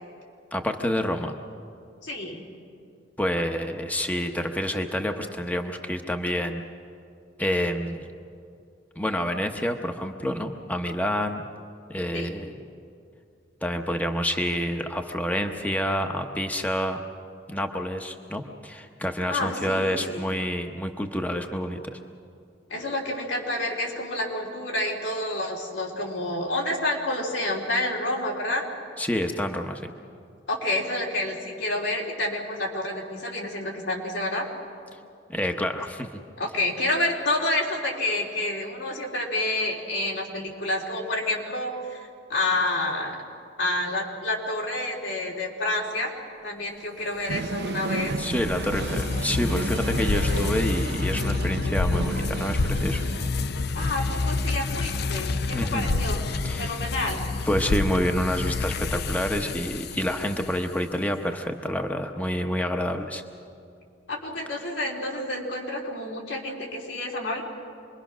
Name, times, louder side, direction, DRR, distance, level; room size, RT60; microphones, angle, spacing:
voice 1, 0.5-1.3 3.2-6.6 7.4-8.1 9.0-11.4 11.9-12.5 13.6-17.0 17.5-22.0 29.0-29.9 35.3-36.1 48.2-53.0 55.5-55.9 56.4-56.7 57.5-63.2, equal, 10° left, 4 dB, 0.9 m, -28 dB
voice 2, 2.0-2.4 12.1-12.3 19.3-20.2 22.7-28.6 30.5-34.5 36.4-43.2 43.6-46.1 46.4-48.2 53.7-56.2 56.6-57.2 64.1-67.4, left 1 dB, 80° left, -1 dB, 3.6 m, -29 dB
sound 1, 47.3-60.7, left 3 dB, 60° left, 0.7 m, -28 dB
sound 2, 47.3-53.3, right 4 dB, 60° right, 0.5 m, -33 dB
26.5 x 22.0 x 6.2 m, 2.4 s
head